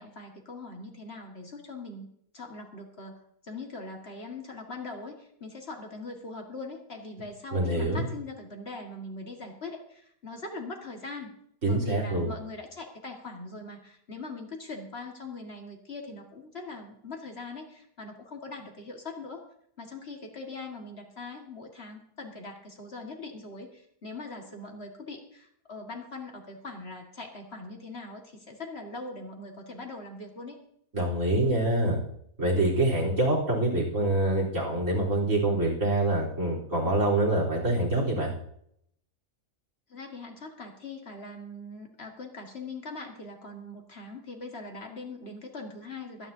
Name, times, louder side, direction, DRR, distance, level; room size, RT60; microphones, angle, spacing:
voice 1, 0.0-2.1 2.3-3.2 3.4-11.3 11.7-19.4 19.8-30.6 39.9-46.3, left 3 dB, 45° left, 2 dB, 2.0 m, -41 dB
voice 2, 7.5-8.1 11.6-12.3 30.9-32.0 32.4-38.3, right 1 dB, 60° right, -1 dB, 4.2 m, -25 dB
24.0 x 9.9 x 2.8 m, 0.71 s
omnidirectional pair, 1.5 m